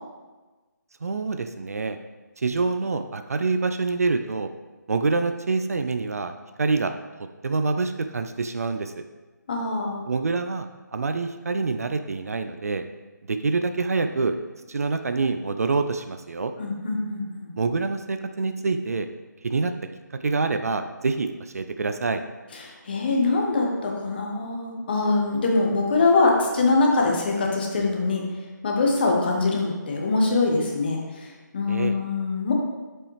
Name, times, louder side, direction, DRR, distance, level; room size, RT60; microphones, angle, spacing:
voice 1, 1.0-2.0 2.4-4.5 4.9-6.3 6.6-6.9 7.4-9.0 10.1-12.8 13.3-14.4 14.7-16.5 17.6-19.1 19.4-19.7 20.2-22.2 31.7-32.0, right 4 dB, 50° right, 8 dB, 0.4 m, -26 dB
voice 2, 9.5-10.0 16.6-17.5 22.6-28.2 28.6-31.3 31.5-32.5, left 3 dB, 30° left, 0 dB, 1.0 m, -23 dB
7.2 x 5.3 x 3.3 m, 1.2 s
figure-of-eight pair, 160°, 10 cm